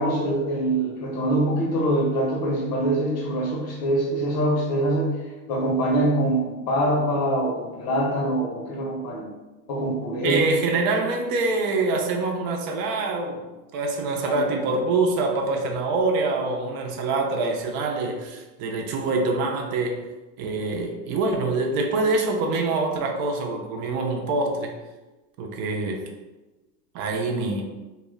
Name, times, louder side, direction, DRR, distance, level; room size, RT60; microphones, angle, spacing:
voice 1, 0.0-5.1 5.5-9.3 9.7-10.5 14.2-14.6, right 1 dB, 80° left, -1 dB, 1.0 m, -24 dB
voice 2, 10.2-13.4 13.7-20.1 20.4-24.8 25.4-26.1 26.9-27.6, right 3 dB, 50° right, 2 dB, 0.6 m, -25 dB
2.4 x 2.1 x 3.5 m, 1.1 s
hypercardioid pair, 95°, 48 cm